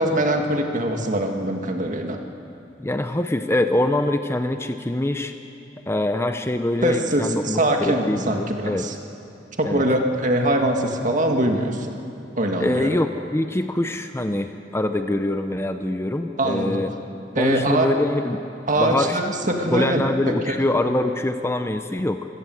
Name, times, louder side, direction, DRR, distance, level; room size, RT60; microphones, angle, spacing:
voice 1, 0.0-2.2 6.8-8.9 9.6-11.9 12.4-13.0 16.4-16.8 17.4-17.9 18.7-20.0 20.5-20.6, right 1 dB, 45° right, 3 dB, 2.0 m, -22 dB
voice 2, 2.8-5.3 5.9-8.8 9.6-9.9 12.6-16.9 17.4-18.4 18.8-19.2 19.7-22.3, left 1 dB, 15° left, 8 dB, 0.7 m, -24 dB
25.5 x 17.0 x 7.8 m, 2.8 s
head